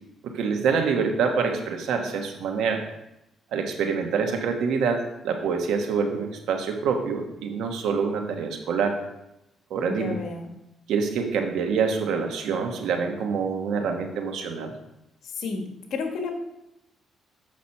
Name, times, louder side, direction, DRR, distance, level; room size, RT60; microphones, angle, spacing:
voice 1, 0.2-2.8 3.5-9.0 9.7-10.1 10.9-14.7, right 5 dB, 80° right, 4 dB, 1.2 m, -26 dB
voice 2, 9.9-10.5 15.2-15.6 15.9-16.3, left 4 dB, 65° left, 4 dB, 1.4 m, -31 dB
7.5 x 6.1 x 4.3 m, 0.87 s
cardioid pair, 90°, 0 cm